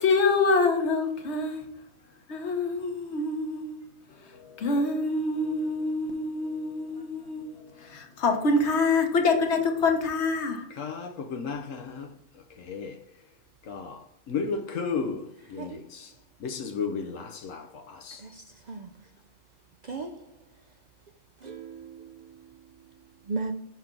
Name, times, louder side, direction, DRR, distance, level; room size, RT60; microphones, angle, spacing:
voice 1, 0.0-1.6 2.3-3.8 4.1-10.6, left 3 dB, 60° left, 1.3 m, -26 dB
voice 2, 10.7-12.1 12.6-13.0 13.7-14.0 14.3-15.2 15.5-16.1 16.4-18.2, left 5 dB, 80° left, 1.1 m, -33 dB
voice 3, 18.2-18.9 19.9-20.1 21.4-22.1 23.3-23.5, right 3 dB, 60° right, 0.4 m, -36 dB
5.9 x 5.8 x 3.8 m
omnidirectional pair, 1.3 m